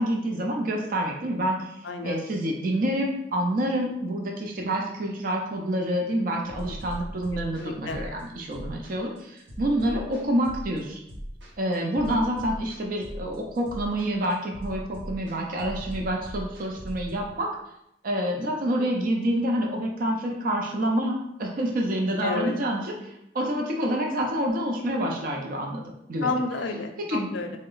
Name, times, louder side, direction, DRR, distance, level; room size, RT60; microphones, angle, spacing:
voice 1, 0.0-11.0 11.6-17.5 18.0-26.4 27.1-27.3, right 1 dB, 50° right, 0 dB, 0.5 m, -27 dB
voice 2, 1.8-2.2 6.7-6.8 7.6-8.0 22.2-22.6 26.2-27.6, left 3 dB, 85° left, 5 dB, 0.5 m, -30 dB
sound 1, 6.5-17.1, equal, 70° right, 0.8 m, -39 dB
3.8 x 2.1 x 3.8 m, 0.80 s
head